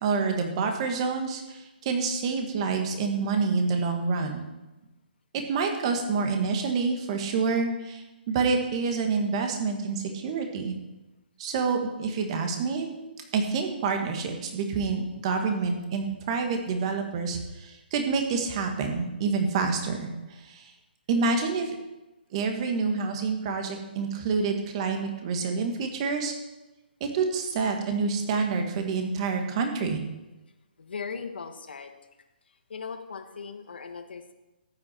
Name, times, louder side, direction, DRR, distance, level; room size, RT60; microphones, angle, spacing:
voice 1, 0.0-4.5 5.3-10.7 11.4-12.9 13.3-20.1 20.4-20.7 21.1-21.8 22.3-26.3 27.1-30.0, right 4 dB, 35° right, 4 dB, 1.8 m, -27 dB
voice 2, 30.8-31.9 32.7-34.3, left 5 dB, 70° left, 7 dB, 1.4 m, -38 dB
14.0 x 8.8 x 4.6 m, 1.0 s
hypercardioid pair, 155°, 6 cm